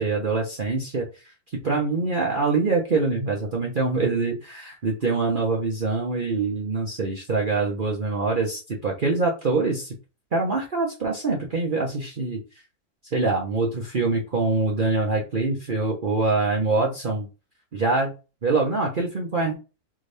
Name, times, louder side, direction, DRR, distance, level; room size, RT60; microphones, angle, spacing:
voice 1, 0.0-1.3 1.6-9.9 10.3-12.4 13.1-17.3 17.7-18.1 18.4-19.5, right 3 dB, 40° right, -2 dB, 0.9 m, -24 dB
4.0 x 3.7 x 3.4 m, 0.31 s
omnidirectional pair, 1.6 m